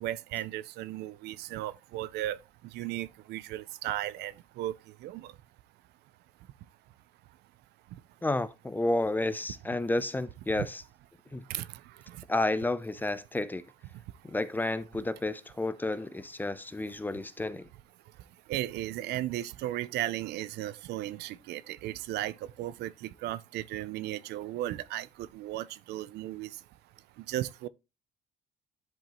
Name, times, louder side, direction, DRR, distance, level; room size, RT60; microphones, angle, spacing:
voice 1, 0.0-2.4 2.7-5.3 11.5-11.8 18.5-26.5 27.3-27.7, right 14 dB, 80° right, 0.5 m, -35 dB
voice 2, 8.2-10.8 11.3-11.4 12.3-13.6 14.2-17.7, left 2 dB, 10° left, 0.5 m, -31 dB
10.5 x 5.2 x 2.9 m
cardioid pair, 110°, 17 cm